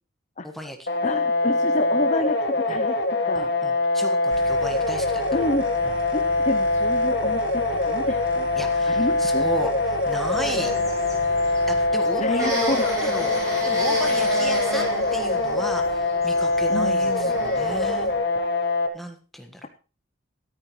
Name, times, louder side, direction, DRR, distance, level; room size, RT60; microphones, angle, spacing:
voice 1, 0.4-0.9 2.7-2.8 3.3-5.2 5.8-5.9 8.6-9.7 10.1-10.7 11.7-13.4 13.6-18.1 18.9-19.6, equal, ahead, 3 dB, 1.5 m, -34 dB
sound 1, 0.9-18.9, left 2 dB, 50° left, 1.5 m, -23 dB
voice 2, 1.0-3.0 3.2-3.5 5.3-5.7 6.1-8.5 8.9-9.5 12.2-12.8 16.7-17.4, left 2 dB, 30° left, 7 dB, 0.7 m, -29 dB
sound 2, 4.3-11.9, equal, 65° right, 1.6 m, -41 dB
sound 3, 10.2-18.2, equal, 15° right, 5.2 m, -33 dB
14.0 x 13.0 x 3.2 m, 0.36 s
head